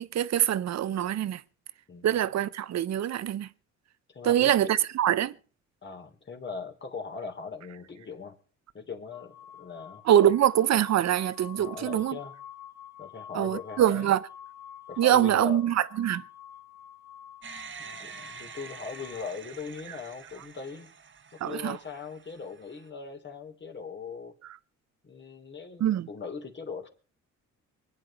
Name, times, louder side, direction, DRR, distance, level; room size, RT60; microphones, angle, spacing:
voice 1, 0.0-1.4 2.0-3.5 4.2-5.3 10.1-12.2 13.3-14.2 15.0-16.2 21.4-21.8 25.8-26.1, right 11 dB, 60° right, 0.9 m, -24 dB
voice 2, 4.1-4.8 5.8-8.4 8.7-10.0 11.5-12.3 13.0-14.1 14.9-15.7 17.8-20.9 21.4-24.3 25.0-26.9, left 5 dB, 35° left, 3.2 m, -40 dB
sound 1, 9.1-19.2, left 10 dB, 10° right, 1.8 m, -48 dB
sound 2, 17.4-22.9, right 6 dB, 40° right, 1.3 m, -47 dB
24.0 x 10.0 x 4.2 m
cardioid pair, 90°, 30 cm